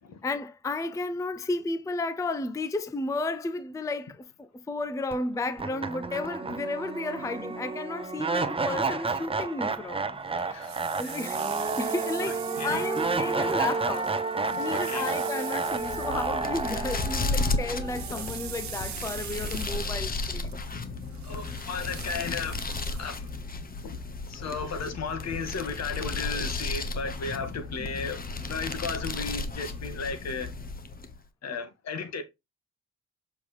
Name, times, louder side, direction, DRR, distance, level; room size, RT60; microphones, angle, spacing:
voice 1, 0.2-10.6 11.0-14.1 14.5-20.6, left 2 dB, 10° left, 0.5 m, -33 dB
sound 1, 5.1-5.2 5.6-18.6, right 4 dB, 20° right, 0.8 m, -31 dB
sound 2, 10.4-17.2 17.5-23.6, right 11 dB, 70° right, 1.2 m, -43 dB
voice 2, 10.5-11.3 12.2-12.8 13.2-13.3 14.4-15.1 19.4-19.6 21.2-23.4 23.8-24.0 24.3-30.5 31.4-32.2, left 5 dB, 60° left, 1.9 m, -35 dB
sound 3, 15.7-31.2, left 3 dB, 30° left, 1.0 m, -34 dB
7.0 x 4.8 x 3.3 m
cardioid pair, 90°, 30 cm